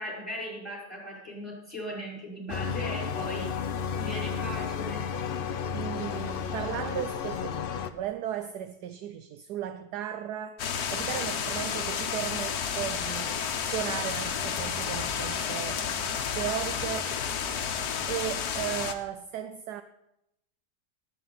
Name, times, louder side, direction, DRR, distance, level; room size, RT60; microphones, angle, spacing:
voice 1, 0.0-3.5 4.0-5.0, equal, 10° right, 5.1 m, -38 dB
sound 1, 2.5-7.9, left 6 dB, 90° left, 0.4 m, -32 dB
voice 2, 5.7-15.8 16.4-17.1 18.1-19.8, right 11 dB, 75° right, 1.1 m, -36 dB
sound 2, 10.6-18.9, left 7 dB, 65° left, 1.3 m, -31 dB
21.0 x 8.4 x 4.0 m
omnidirectional pair, 1.9 m